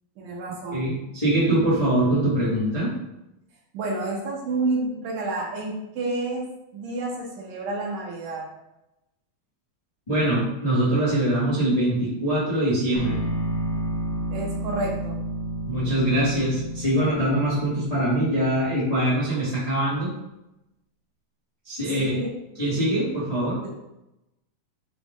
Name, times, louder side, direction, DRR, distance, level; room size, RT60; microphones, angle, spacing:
voice 1, 0.2-0.8 3.7-6.4 6.7-8.5 14.3-15.2 21.9-22.3, right 2 dB, 75° right, -2 dB, 2.4 m, -29 dB
voice 2, 0.7-2.9 10.1-13.2 15.7-20.1 21.6-22.1 22.6-23.6, right 1 dB, 35° left, -10 dB, 0.5 m, -23 dB
sound 1, 12.9-19.0, right 1 dB, 80° left, 1.5 m, -31 dB
6.1 x 2.4 x 3.6 m, 0.89 s
omnidirectional pair, 3.9 m